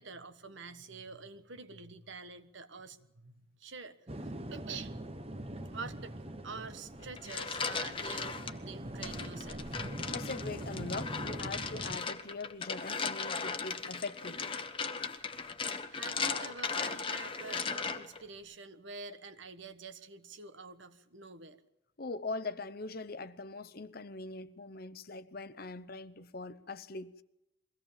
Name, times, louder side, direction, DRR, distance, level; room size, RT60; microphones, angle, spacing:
voice 1, 0.0-5.0 5.4-6.1 6.4-9.8 15.2-15.4 15.9-21.6, right 4 dB, 65° right, 1.4 m, -47 dB
sound 1, 4.1-12.0, right 1 dB, 30° right, 1.1 m, -42 dB
sound 2, 7.0-8.5 9.0-18.2, left 5 dB, 25° left, 1.1 m, -37 dB
voice 2, 10.1-14.6 22.0-27.2, left 3 dB, 50° left, 0.8 m, -42 dB
23.0 x 17.0 x 7.4 m
head